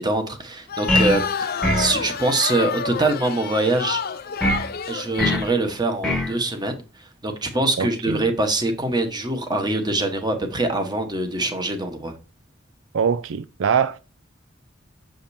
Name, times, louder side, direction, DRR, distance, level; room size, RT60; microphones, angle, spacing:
voice 1, 0.0-4.0 4.9-6.8 7.2-12.1, right 2 dB, 20° right, 1.2 m, -24 dB
sound 1, 0.7-5.6, left 6 dB, 50° left, 0.5 m, -29 dB
sound 2, 0.9-1.2 1.6-2.0 4.4-4.7 5.2-5.5 6.0-6.3, left 1 dB, 5° left, 1.1 m, -21 dB
voice 2, 7.8-8.2 12.9-14.0, right 7 dB, 75° right, 0.4 m, -23 dB
7.2 x 5.1 x 2.7 m
head